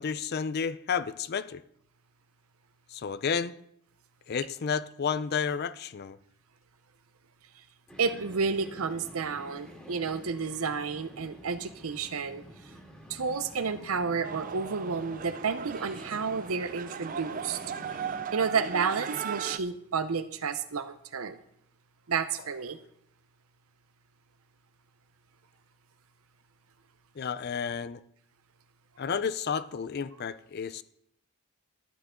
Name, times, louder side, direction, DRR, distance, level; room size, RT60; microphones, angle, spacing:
voice 1, 0.0-1.6 2.9-3.6 4.3-6.2 27.2-28.0 29.0-30.8, left 6 dB, 45° left, 15 dB, 0.4 m, -31 dB
sound 1, 7.9-18.3, equal, 5° left, 2.0 m, -49 dB
voice 2, 8.0-12.4 13.1-17.6 18.3-21.4 22.1-22.8, right 5 dB, 70° right, 10 dB, 0.7 m, -31 dB
sound 2, 14.2-19.6, right 7 dB, 40° right, 0.4 m, -38 dB
12.0 x 9.1 x 3.7 m, 0.73 s
head